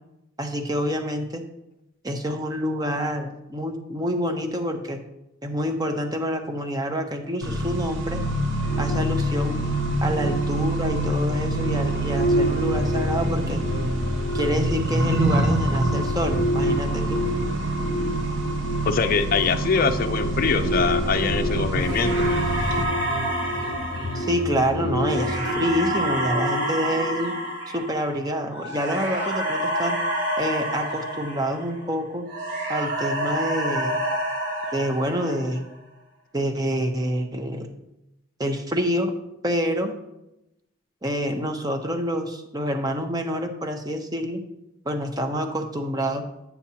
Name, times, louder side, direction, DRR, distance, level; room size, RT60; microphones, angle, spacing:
voice 1, 0.4-1.4 2.0-5.0 5.4-8.2 8.8-9.6 10.0-13.6 14.3-17.2 24.1-27.3 27.7-30.0 30.4-32.3 32.7-34.0 34.7-35.6 36.3-37.7 38.4-39.1 39.4-39.9 41.0-44.4 44.8-46.2, equal, 20° right, 5 dB, 0.7 m, -27 dB
Accelerating revving vroom, 7.4-22.8, right 1 dB, 65° right, 0.9 m, -26 dB
sound 1, 8.6-27.5, equal, 45° right, 2.7 m, -29 dB
voice 2, 18.8-22.2, left 5 dB, 45° left, 7 dB, 0.5 m, -23 dB
sound 2, 21.7-31.9 32.3-35.7, right 1 dB, 85° right, 2.7 m, -28 dB
9.8 x 7.0 x 2.8 m, 0.88 s
head